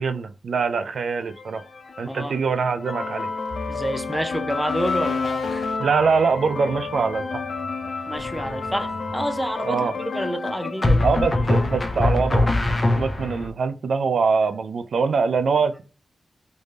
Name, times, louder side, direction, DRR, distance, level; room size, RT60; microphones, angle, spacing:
voice 1, 0.0-1.6 2.0-3.3 5.8-7.4 9.6-9.9 11.0-15.8, right 5 dB, 80° right, 0.3 m, -23 dB
sound 1, 1.3-13.1, left 4 dB, 70° left, 0.5 m, -31 dB
voice 2, 2.1-2.4 3.7-5.7 8.1-11.1, equal, 5° right, 0.6 m, -28 dB
sound 2, 3.5-10.3, left 1 dB, 35° right, 1.1 m, -43 dB
sound 3, 8.2-8.7 10.8-13.5, left 2 dB, 35° left, 0.7 m, -22 dB
3.3 x 2.6 x 3.3 m
cardioid pair, 60°, 0 cm